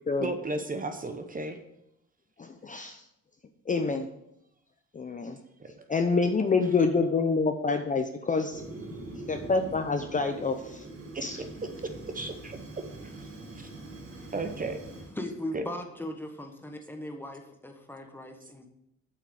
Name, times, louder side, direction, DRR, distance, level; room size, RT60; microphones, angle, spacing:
voice 1, 0.2-1.6 5.6-5.9 11.1-11.7 12.1-12.6 13.0-13.3 13.6-13.7 14.3-14.8 15.5-15.6, right 2 dB, 30° right, 7 dB, 0.8 m, -34 dB
voice 2, 2.4-3.0 3.7-4.1 4.9-5.4 5.9-8.6 9.3-10.6 11.2-11.4, left 4 dB, 25° left, 6 dB, 0.6 m, -27 dB
Fire, 8.5-15.1, right 2 dB, 50° right, 2.1 m, -43 dB
voice 3, 15.2-18.7, left 1 dB, 5° left, 4 dB, 1.3 m, -39 dB
7.6 x 5.9 x 4.9 m, 0.80 s
cardioid pair, 90°, 30 cm